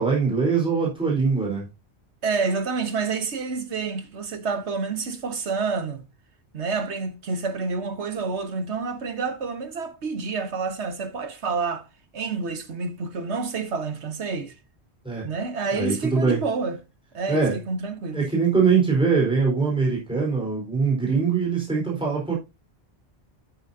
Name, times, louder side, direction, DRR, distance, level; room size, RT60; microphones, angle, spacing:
voice 1, 0.0-1.7 15.0-15.3 15.7-16.4 17.3-17.6 18.1-22.4, right 5 dB, 5° right, 4.1 m, -22 dB
voice 2, 2.2-6.0 6.5-11.9 12.1-14.5 15.2-16.8 17.1-18.2, right 4 dB, 85° right, 1.5 m, -28 dB
9.5 x 9.1 x 2.7 m
omnidirectional pair, 1.1 m